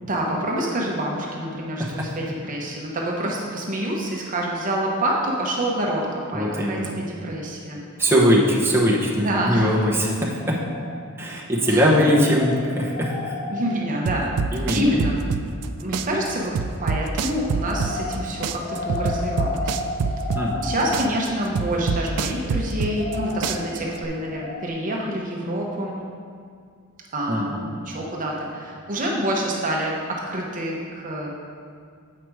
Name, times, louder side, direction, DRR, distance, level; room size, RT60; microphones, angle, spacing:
voice 1, 0.0-7.8 9.2-9.8 11.7-12.1 13.5-15.2 15.8-16.6 16.8-19.8 20.6-26.0 27.1-31.3, right 1 dB, 35° right, -2 dB, 0.8 m, -27 dB
voice 2, 1.8-2.1 6.3-6.9 8.0-10.6 11.2-13.4 14.5-14.9 20.4-20.7 27.3-27.6, equal, 10° right, -5 dB, 0.9 m, -21 dB
sound 1, 10.3-11.3 11.6-14.8 17.5-24.7, left 2 dB, 35° left, 0.6 m, -34 dB
sound 2, 14.1-15.7 15.9-18.2 18.4-20.7 20.9-23.2 23.4-24.1, right 5 dB, 85° right, 0.4 m, -25 dB
7.7 x 4.9 x 4.6 m, 2.2 s
head